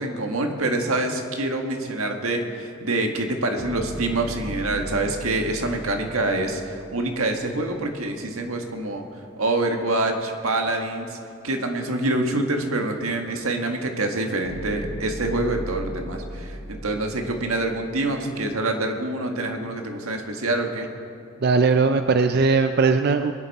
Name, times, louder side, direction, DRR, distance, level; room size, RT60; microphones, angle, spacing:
voice 1, 0.0-9.0 9.4-11.2 11.4-20.9, right 2 dB, 85° right, 3 dB, 1.6 m, -26 dB
sound 1, 3.6-7.9 14.4-18.2, equal, 45° left, 2.4 m, -37 dB
voice 2, 21.4-23.3, right 4 dB, 50° right, 8 dB, 0.4 m, -19 dB
23.0 x 10.5 x 4.2 m, 2.5 s
head